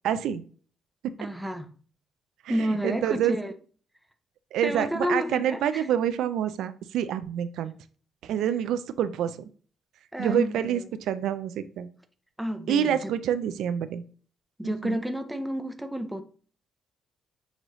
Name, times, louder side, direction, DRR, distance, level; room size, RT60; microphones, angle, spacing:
voice 1, 0.0-0.4 1.0-1.1 2.4-2.5 2.8-3.3 4.5-7.7 8.2-9.4 10.2-10.8 11.1-11.9 12.7-14.0 14.8-15.0, right 9 dB, 80° right, 0.3 m, -27 dB
voice 2, 1.2-1.7 2.5-3.5 4.6-5.9 10.1-10.9 12.4-13.1 14.6-16.2, equal, 5° right, 0.6 m, -30 dB
6.2 x 2.6 x 3.0 m
cardioid pair, 90°, 0 cm